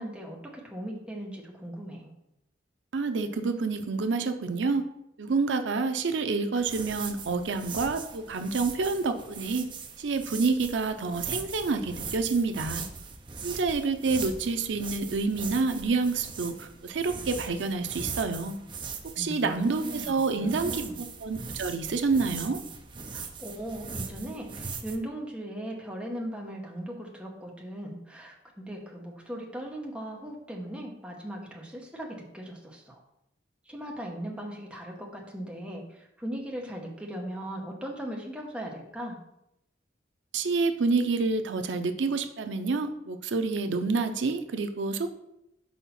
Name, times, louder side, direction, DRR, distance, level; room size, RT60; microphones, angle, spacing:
voice 1, 0.0-2.1 19.2-21.0 23.1-33.0 33.7-39.2, right 1 dB, 5° right, -2 dB, 1.0 m, -38 dB
voice 2, 2.9-4.8 5.2-9.6 10.0-12.8 13.4-18.6 19.2-20.8 21.2-22.6 40.3-45.2, right 4 dB, 85° right, 8 dB, 0.5 m, -28 dB
sound 1, 6.6-25.0, right 5 dB, 25° right, 0.5 m, -40 dB
4.5 x 4.3 x 5.7 m, 0.83 s
head